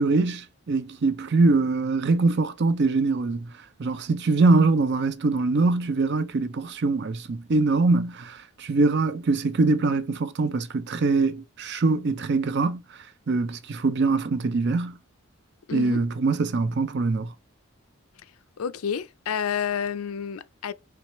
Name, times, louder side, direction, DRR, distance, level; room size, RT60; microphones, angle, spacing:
voice 1, 0.0-3.5 3.8-12.8 13.3-15.0 15.7-17.3, right 3 dB, 50° right, 0.5 m, -23 dB
voice 2, 15.7-16.0 18.6-20.7, left 7 dB, 75° left, 0.4 m, -29 dB
4.7 x 3.2 x 3.0 m
head